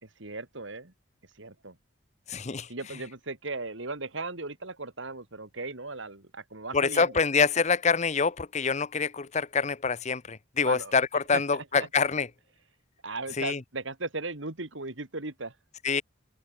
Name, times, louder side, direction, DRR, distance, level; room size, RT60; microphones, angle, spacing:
voice 1, 0.2-0.9 1.4-1.8 2.7-7.2 10.6-11.0 11.3-11.9 13.0-15.5, right 3 dB, 65° right, 2.5 m, -37 dB
voice 2, 2.3-2.7 6.7-12.3 13.4-13.6 15.8-16.0, left 5 dB, 35° left, 0.7 m, -26 dB
head